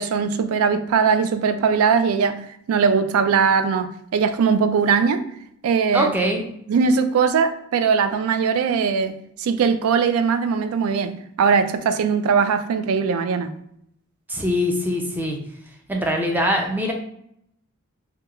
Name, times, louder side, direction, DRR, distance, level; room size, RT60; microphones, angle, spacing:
voice 1, 0.0-2.4 2.7-5.2 5.6-6.1 6.7-11.1 11.4-13.5, right 6 dB, 80° right, 10 dB, 0.3 m, -20 dB
voice 2, 5.9-6.4 14.3-15.4 15.9-16.9, equal, 10° right, 1 dB, 0.4 m, -22 dB
2.9 x 2.3 x 2.3 m, 0.75 s
head